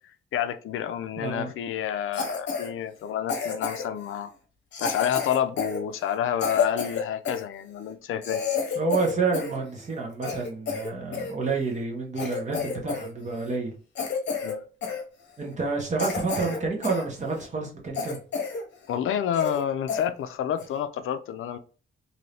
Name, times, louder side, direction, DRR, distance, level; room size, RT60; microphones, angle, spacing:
voice 1, 0.3-4.3 4.8-8.4 14.4-14.6 18.9-21.6, left 9 dB, 75° left, 0.4 m, -29 dB
voice 2, 1.2-1.5 8.7-13.7 15.4-18.2, right 4 dB, 35° right, 1.0 m, -29 dB
Cough, 2.1-2.7 3.3-4.0 4.7-7.4 7.9-8.0 8.2-9.6 9.9-11.3 11.8-11.9 12.2-13.1 13.3-13.6 13.9-14.6 14.8-15.0 15.5-15.6 16.0-17.0 17.4-17.5 17.9-18.6 18.9-19.0 19.3-19.6 19.9-20.0 20.6-20.8, left 5 dB, 55° left, 0.9 m, -30 dB
2.7 x 2.7 x 3.3 m
wide cardioid pair, 160°, 21 cm